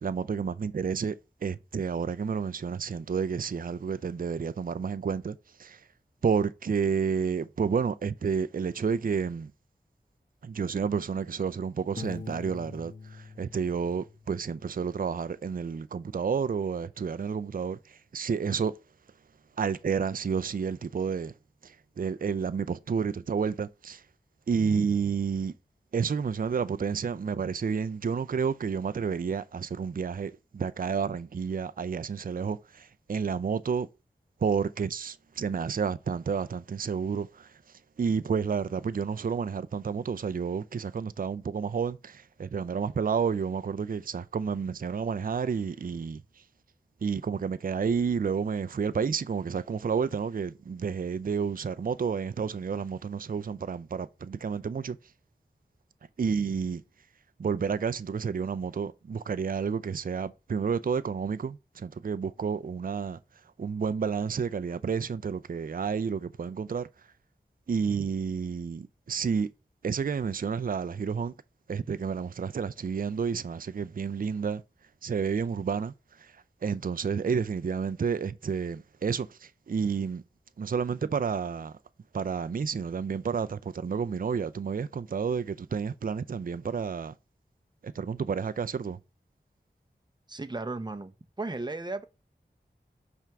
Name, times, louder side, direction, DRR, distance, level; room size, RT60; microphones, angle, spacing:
voice 1, 0.0-5.8 6.2-9.5 10.4-18.7 19.6-21.3 21.6-24.0 24.5-25.5 25.9-33.9 34.4-37.6 38.0-46.2 47.0-55.0 56.2-56.8 57.4-63.2 63.6-66.9 67.7-69.5 69.8-71.3 71.7-74.6 75.0-80.2 80.6-81.8 82.1-87.1 87.8-89.0, right 6 dB, 50° right, 0.4 m, -30 dB
Piano, 12.0-14.7, left 4 dB, 45° left, 1.0 m, -44 dB
voice 2, 90.3-91.1 91.4-92.0, right 2 dB, 25° right, 0.7 m, -34 dB
5.8 x 3.5 x 5.8 m
wide cardioid pair, 60°, 18 cm